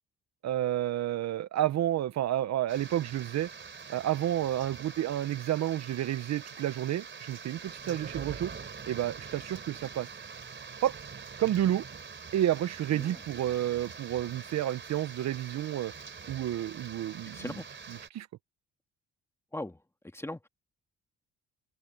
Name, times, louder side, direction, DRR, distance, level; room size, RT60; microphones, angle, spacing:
voice 1, 0.4-3.5 3.9-8.5 8.9-10.1 10.8-11.0 11.4-11.8 12.3-15.9 16.3-17.5 18.1-18.3, right 12 dB, 60° right, 0.7 m, -30 dB
sound 1, 2.7-18.1, right 6 dB, 40° right, 3.5 m, -45 dB
voice 2, 12.9-13.2 17.3-17.7 19.5-20.5, left 1 dB, 10° left, 2.0 m, -40 dB
cardioid pair, 90°, 30 cm